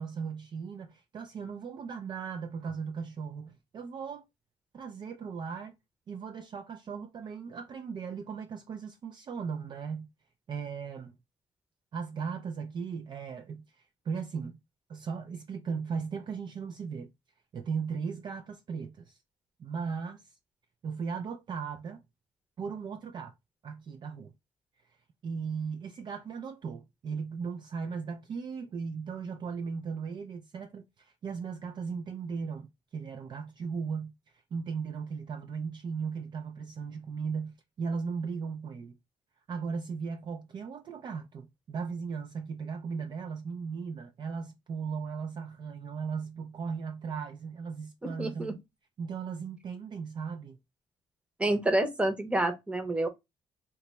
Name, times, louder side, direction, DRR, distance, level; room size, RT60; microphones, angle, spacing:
voice 1, 0.0-4.2 4.7-5.7 6.1-10.1 10.5-11.1 11.9-13.7 14.0-14.6 14.9-17.1 17.5-19.2 19.6-20.3 20.8-22.0 22.6-23.3 23.6-24.3 25.2-34.1 34.5-39.0 39.5-48.6 49.0-50.6, right 5 dB, 40° right, 0.4 m, -37 dB
voice 2, 48.2-48.6 51.4-53.1, right 1 dB, 10° right, 0.7 m, -28 dB
2.9 x 2.3 x 4.0 m
cardioid pair, 145°, 11 cm